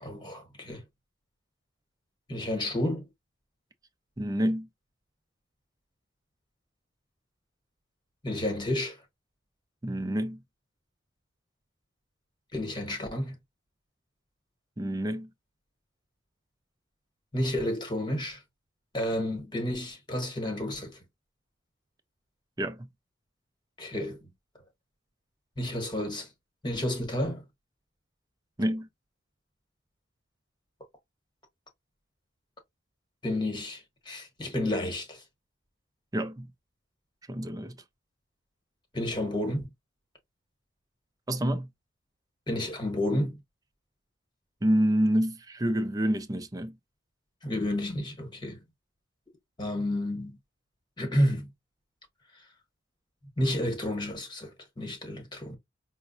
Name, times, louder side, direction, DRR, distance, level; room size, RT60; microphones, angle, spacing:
voice 1, 0.0-0.8 2.3-3.0 8.2-9.0 12.5-13.3 17.3-18.4 18.9-21.0 23.8-24.3 25.6-26.3 26.6-27.4 33.2-35.2 38.9-39.7 42.5-43.4 47.4-48.6 49.6-50.4 51.0-51.5 53.4-55.6, left 1 dB, 25° left, 1.1 m, -31 dB
voice 2, 4.2-4.7 9.8-10.4 14.8-15.3 22.6-22.9 28.6-28.9 36.1-36.5 37.3-37.8 41.3-41.7 44.6-46.8, equal, 20° right, 0.5 m, -27 dB
5.5 x 2.0 x 2.6 m
head